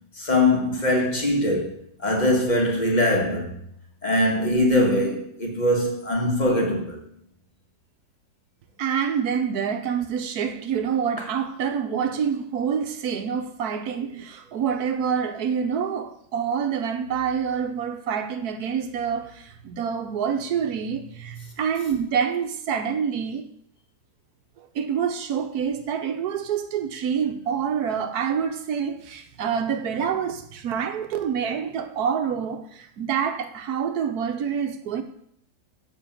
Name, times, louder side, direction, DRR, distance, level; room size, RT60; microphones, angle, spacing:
voice 1, 0.2-1.7 2.0-3.6 4.0-7.0, left 1 dB, 25° left, 1.7 m, -22 dB
voice 2, 8.8-23.5 24.6-35.0, right 7 dB, 70° right, 1.3 m, -27 dB
6.9 x 5.4 x 7.3 m
omnidirectional pair, 1.8 m